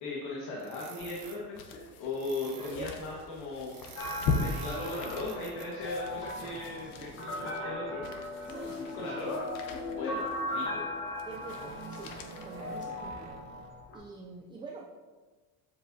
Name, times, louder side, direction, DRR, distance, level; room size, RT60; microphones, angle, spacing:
voice 1, 0.0-8.1 8.9-9.5 9.9-10.9, left 2 dB, 70° left, -5 dB, 1.5 m, -38 dB
sound 1, 0.6-1.4 2.1-2.8 3.6-7.6 8.6-9.6 10.5-10.8 11.3-13.7, right 5 dB, 55° right, 1.1 m, -48 dB
sound 2, 0.8-13.5 13.9-14.0, left 4 dB, 50° left, 0.8 m, -40 dB
voice 2, 2.5-2.9 6.4-7.1 8.5-9.1 11.3-12.2 12.4-13.5 13.9-14.9, right 4 dB, 10° right, -2 dB, 0.3 m, -46 dB
sound 3, 4.0-14.0, left 1 dB, 35° left, 1.4 m, -38 dB
7.5 x 7.4 x 2.7 m, 1.4 s
cardioid pair, 160°, 42 cm